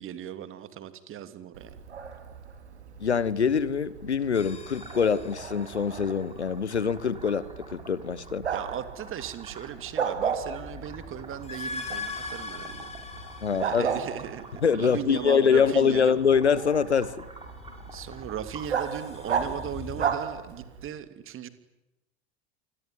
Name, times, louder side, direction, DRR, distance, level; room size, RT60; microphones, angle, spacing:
voice 1, 0.0-1.7 8.5-12.9 13.5-16.1 17.9-21.5, right 10 dB, 40° right, 12 dB, 3.0 m, -37 dB
Bark, 1.5-20.9, right 7 dB, 80° right, 3.2 m, -36 dB
voice 2, 3.0-8.5 13.4-13.9 14.6-17.3, left 6 dB, 85° left, 18 dB, 1.4 m, -24 dB
sound 1, 4.3-6.3 10.2-14.7 17.2-20.1, left 3 dB, 20° left, 5.5 m, -41 dB
sound 2, 4.7-19.5, right 3 dB, 15° right, 6.5 m, -49 dB
27.5 x 21.5 x 9.5 m, 0.95 s
figure-of-eight pair, 75°, 33 cm